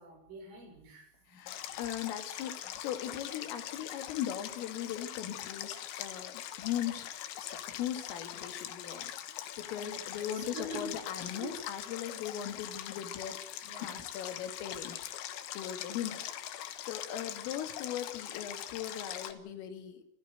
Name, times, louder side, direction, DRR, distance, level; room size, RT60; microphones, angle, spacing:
voice 1, 0.0-1.7 9.7-11.0 11.3-11.5 13.6-14.0, right 1 dB, 75° right, 2 dB, 9.4 m, -45 dB
voice 2, 1.3-7.1 7.4-13.4 13.8-15.0 15.5-16.2 16.8-20.0, left 10 dB, 90° left, 7 dB, 4.9 m, -39 dB
Stream, 1.5-19.3, left 12 dB, 70° left, 3.3 m, -42 dB
28.0 x 15.0 x 8.0 m, 0.70 s
omnidirectional pair, 5.7 m